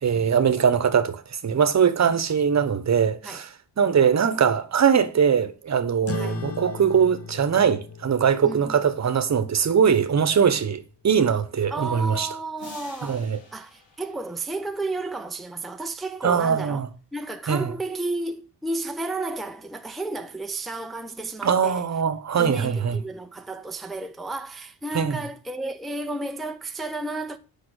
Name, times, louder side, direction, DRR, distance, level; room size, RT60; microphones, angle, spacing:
voice 1, 0.0-3.5 3.8-12.3 13.0-13.4 16.2-16.9 17.5-17.7 21.4-23.0 24.9-25.2, right 7 dB, 40° right, 1.1 m, -21 dB
sound 1, 6.1-10.9, left 6 dB, 35° left, 0.9 m, -38 dB
voice 2, 8.4-8.8 11.7-13.2 13.5-16.8 17.1-21.9 22.4-27.4, right 2 dB, ahead, 0.6 m, -32 dB
sound 2, 12.6-15.1, left 4 dB, 80° left, 5.3 m, -48 dB
8.8 x 5.9 x 8.1 m
wide cardioid pair, 160°, 43 cm